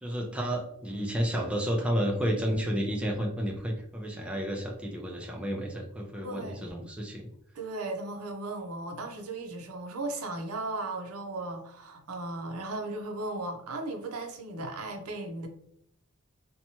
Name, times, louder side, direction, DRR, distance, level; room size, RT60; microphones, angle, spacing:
voice 1, 0.0-7.3, equal, 5° right, 0.3 m, -31 dB
voice 2, 6.2-7.0 7.5-15.5, right 2 dB, 80° right, 0.6 m, -36 dB
2.8 x 2.2 x 2.7 m
head